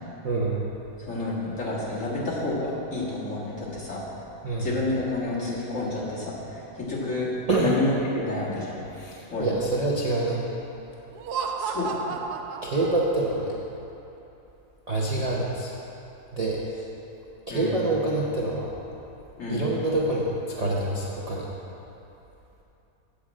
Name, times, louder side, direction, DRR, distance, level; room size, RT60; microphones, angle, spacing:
voice 1, 0.2-0.6 4.4-4.7 7.5-7.7 8.9-10.5 12.6-13.6 14.9-15.7 16.3-16.6 17.5-18.7 19.5-20.3 20.6-21.5, right 2 dB, 35° right, -6 dB, 0.7 m, -26 dB
voice 2, 1.1-4.0 4.6-7.3 7.6-8.8 9.3-9.6 11.6-12.1 17.5-17.8 19.4-19.6, left 2 dB, 50° left, -7 dB, 2.2 m, -29 dB
Laughter, 11.1-13.5, right 5 dB, 75° right, 1.1 m, -32 dB
8.7 x 4.9 x 7.4 m, 2.9 s
omnidirectional pair, 1.7 m